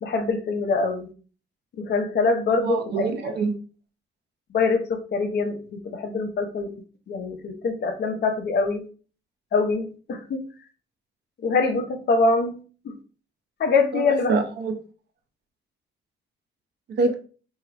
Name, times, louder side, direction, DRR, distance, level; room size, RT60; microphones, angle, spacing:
voice 1, 0.0-1.1 1.8-3.1 4.5-5.6 5.8-6.7 7.1-8.8 9.5-10.4 11.4-12.5 12.8-12.9 13.6-14.3, left 3 dB, 55° left, 6 dB, 0.7 m, -24 dB
voice 2, 2.6-3.5 13.9-14.7 16.9-17.1, right 4 dB, 60° right, 6 dB, 0.6 m, -25 dB
3.0 x 2.8 x 2.4 m, 0.39 s
cardioid pair, 90°, 20 cm